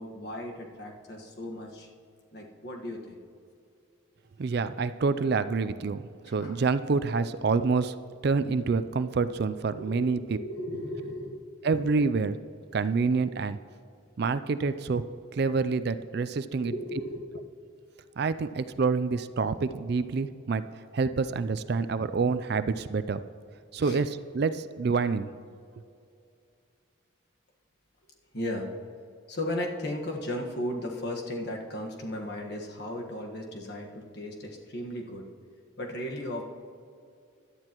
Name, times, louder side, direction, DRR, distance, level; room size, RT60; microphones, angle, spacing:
voice 1, 0.0-1.9 2.3-3.2 6.3-6.6 9.8-11.6 16.6-17.4 23.8-24.0 28.3-28.7 29.3-35.3 35.8-36.4, left 1 dB, 55° left, 1 dB, 1.5 m, -36 dB
voice 2, 4.4-8.0 8.2-10.4 11.6-12.3 12.7-13.6 14.2-15.0 15.3-16.7 18.2-20.6 20.9-23.2 23.7-25.3, right 4 dB, 50° right, 12 dB, 0.4 m, -27 dB
17.0 x 11.5 x 3.0 m, 2.4 s
head